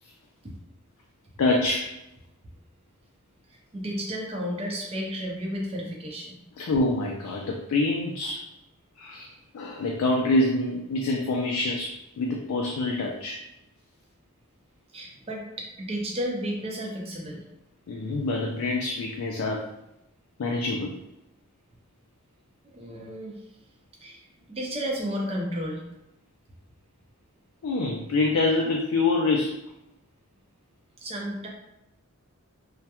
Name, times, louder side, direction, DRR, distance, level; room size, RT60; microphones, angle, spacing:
voice 1, 1.4-1.9 6.6-8.5 9.0-13.4 17.9-19.7 20.4-21.0 27.6-29.6, left 2 dB, 65° left, 0 dB, 0.3 m, -26 dB
voice 2, 3.5-6.3 14.9-17.4 22.6-23.4 24.0-25.8 31.0-31.5, equal, 25° right, -1 dB, 0.5 m, -33 dB
2.2 x 2.1 x 2.8 m, 0.88 s
head